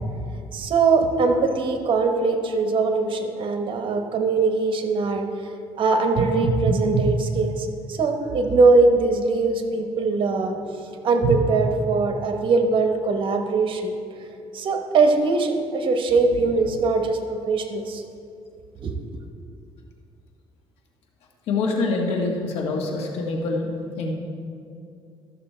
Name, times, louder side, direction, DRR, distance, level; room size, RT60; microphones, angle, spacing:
voice 1, 0.5-5.3 5.8-10.6 11.0-13.9 14.5-18.0 18.8-19.0, right 3 dB, 55° right, 5 dB, 1.1 m, -21 dB
voice 2, 21.5-24.1, left 3 dB, 75° left, 0 dB, 1.7 m, -25 dB
13.0 x 6.6 x 4.4 m, 2.6 s
cardioid pair, 105°, 10 cm